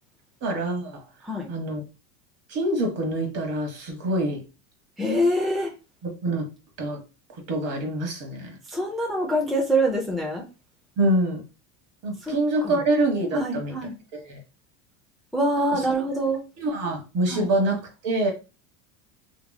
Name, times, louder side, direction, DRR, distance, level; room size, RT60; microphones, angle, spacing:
voice 1, 0.4-1.0 1.5-1.8 2.5-4.4 6.0-6.5 6.8-7.0 7.5-8.6 11.0-11.4 12.0-13.7 14.1-14.4 15.6-15.7 16.6-18.3, right 1 dB, 40° right, 3 dB, 1.1 m, -25 dB
voice 2, 5.0-5.7 8.7-10.4 12.2-12.3 12.6-12.7 13.3-14.0 15.3-16.4 17.3-17.5, right 1 dB, ahead, -1 dB, 0.5 m, -25 dB
2.9 x 2.9 x 2.2 m, 0.30 s
supercardioid pair, 125°, 39 cm